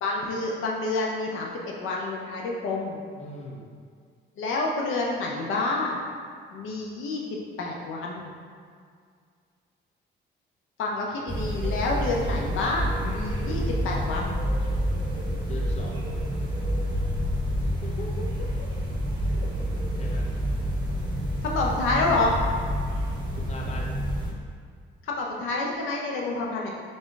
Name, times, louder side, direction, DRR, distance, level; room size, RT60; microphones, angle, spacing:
voice 1, 0.0-3.0 4.4-6.0 6.5-7.2 7.6-8.3 10.8-14.4 17.6-18.5 21.4-22.4 25.0-26.7, left 3 dB, 85° left, -1 dB, 0.7 m, -28 dB
voice 2, 3.2-3.7 15.5-16.2 20.0-20.3 23.4-24.0, left 2 dB, 35° left, -1 dB, 0.7 m, -39 dB
sound 1, 11.3-24.3, equal, 20° right, 1.1 m, -28 dB
3.9 x 3.5 x 3.7 m, 2.1 s
cardioid pair, 90°, 20 cm